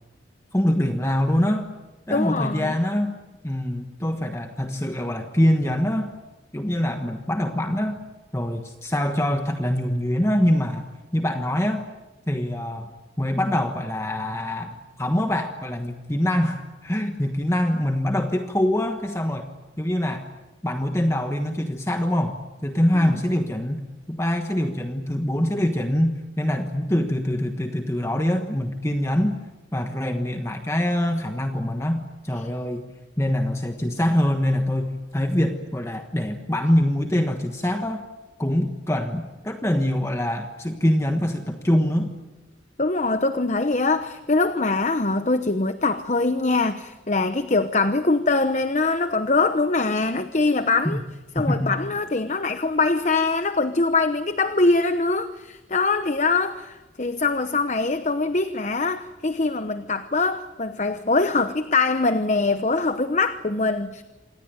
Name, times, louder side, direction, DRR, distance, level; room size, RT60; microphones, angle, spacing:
voice 1, 0.5-1.7 2.1-3.2 3.4-6.1 6.5-8.0 8.3-11.9 12.3-19.5 19.8-20.3 20.6-29.4 29.7-32.8 33.2-38.0 38.4-42.1 50.8-51.0 51.4-51.7, left 1 dB, 15° left, 5 dB, 1.3 m, -24 dB
voice 2, 2.1-2.7 42.8-51.0 51.4-64.0, left 3 dB, 40° left, 10 dB, 0.9 m, -23 dB
27.0 x 19.0 x 9.3 m, 1.1 s
head